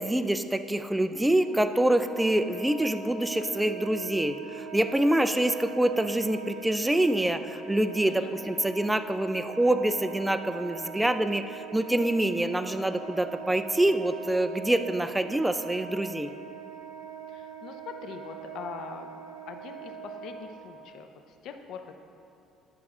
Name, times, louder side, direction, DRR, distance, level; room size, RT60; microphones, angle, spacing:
voice 1, 0.0-16.3, right 1 dB, 5° right, 9 dB, 0.3 m, -26 dB
Wind instrument woodwind instrument, 1.3-20.8, right 5 dB, 45° right, 2.0 m, -42 dB
voice 2, 17.3-19.2 19.4-22.0, left 6 dB, 65° left, 6 dB, 0.6 m, -42 dB
10.5 x 6.0 x 3.7 m, 2.6 s
cardioid pair, 125°, 0 cm